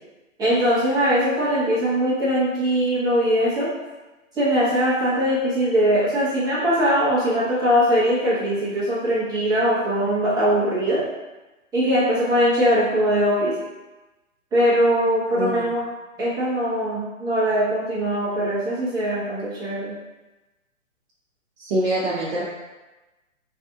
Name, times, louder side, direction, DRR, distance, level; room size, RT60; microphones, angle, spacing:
voice 1, 0.4-3.7 4.4-11.0 11.7-13.5 14.5-15.8 16.2-19.9, equal, 10° right, -10 dB, 0.9 m, -21 dB
voice 2, 21.6-22.4, right 1 dB, 50° right, -7 dB, 0.7 m, -24 dB
2.7 x 2.5 x 3.5 m, 1.1 s
hypercardioid pair, 135°, 40 cm